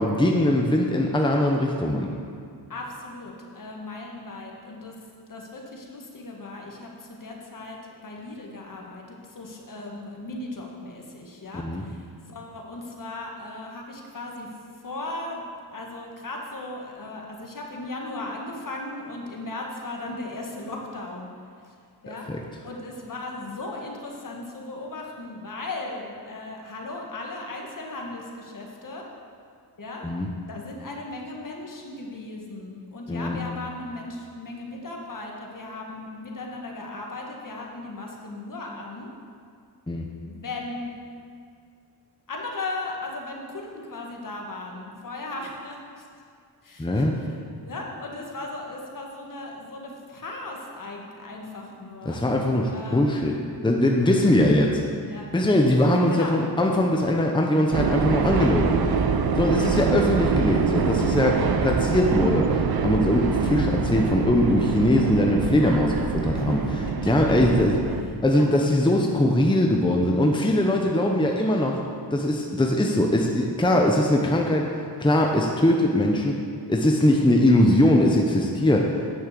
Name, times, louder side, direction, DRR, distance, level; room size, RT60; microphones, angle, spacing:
voice 1, 0.0-2.1 11.5-11.8 22.1-22.4 30.0-30.3 33.1-33.4 39.9-40.1 46.8-47.1 52.1-53.3 53.6-54.8 55.3-58.8 59.4-67.8 68.2-71.8 72.1-74.7 75.0-76.4 76.7-79.1, left 1 dB, 10° left, 0 dB, 0.8 m, -21 dB
voice 2, 2.7-5.0 5.3-14.5 14.8-15.4 15.7-21.3 21.6-21.7 22.0-22.3 22.6-29.1 29.8-30.1 30.4-39.1 40.2-40.9 42.3-46.1 46.6-52.2 52.7-53.4 55.1-55.3 56.1-56.4 59.6-59.9 66.3-66.9 67.3-67.4 68.3-68.5 73.7-73.9 77.5-77.9, left 2 dB, 50° left, 0 dB, 1.7 m, -37 dB
sound 1, 57.7-68.0, right 5 dB, 60° right, 0.7 m, -25 dB
9.2 x 6.5 x 6.8 m, 2.3 s
cardioid pair, 90°, 41 cm